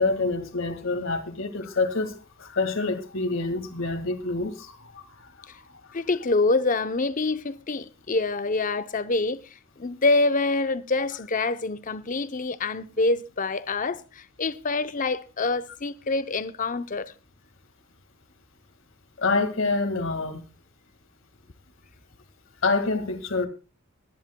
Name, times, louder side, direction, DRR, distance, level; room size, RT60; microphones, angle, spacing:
voice 1, 0.0-5.5 19.2-20.4 22.6-23.5, left 3 dB, 60° left, 1.9 m, -27 dB
voice 2, 5.9-9.4 9.8-17.1, left 3 dB, 40° left, 0.7 m, -26 dB
22.0 x 10.5 x 2.2 m
head